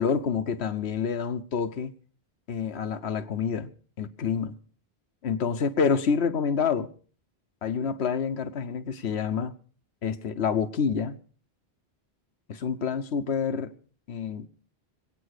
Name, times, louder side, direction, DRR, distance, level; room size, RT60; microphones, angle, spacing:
voice 1, 0.0-1.9 2.5-3.7 4.0-4.5 5.2-6.9 7.6-9.5 10.0-11.2 12.5-13.7 14.1-14.5, left 6 dB, 90° left, 10 dB, 1.2 m, -27 dB
22.0 x 9.1 x 6.5 m, 0.42 s
omnidirectional pair, 1.1 m